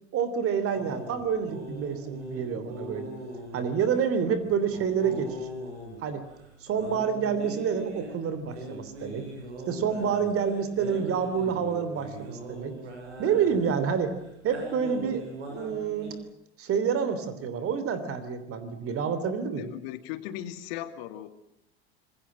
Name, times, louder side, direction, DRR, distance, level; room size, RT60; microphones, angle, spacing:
voice 1, 0.1-3.1 3.5-5.5 6.0-6.2 6.6-9.3 9.7-12.7 13.2-14.2 14.4-16.2 16.6-19.7, right 7 dB, 40° right, 12 dB, 3.3 m, -28 dB
sound 1, 0.7-16.1, right 1 dB, 80° right, 8.0 m, -41 dB
voice 2, 19.6-21.3, left 12 dB, 60° left, 9 dB, 2.6 m, -37 dB
27.0 x 21.5 x 7.5 m, 0.74 s
hypercardioid pair, 85°, 34 cm